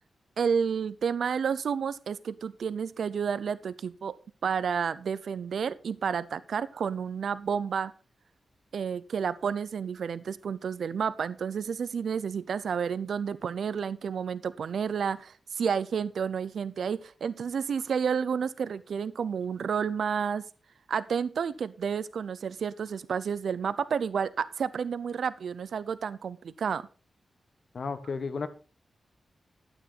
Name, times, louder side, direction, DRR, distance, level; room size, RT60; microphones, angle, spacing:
voice 1, 0.4-4.2 4.4-7.9 8.7-20.4 20.9-26.9, right 6 dB, 70° right, 15 dB, 0.6 m, -30 dB
voice 2, 27.7-28.5, left 4 dB, 50° left, 10 dB, 1.3 m, -33 dB
12.0 x 9.3 x 4.2 m, 0.35 s
wide cardioid pair, 170°, 0 cm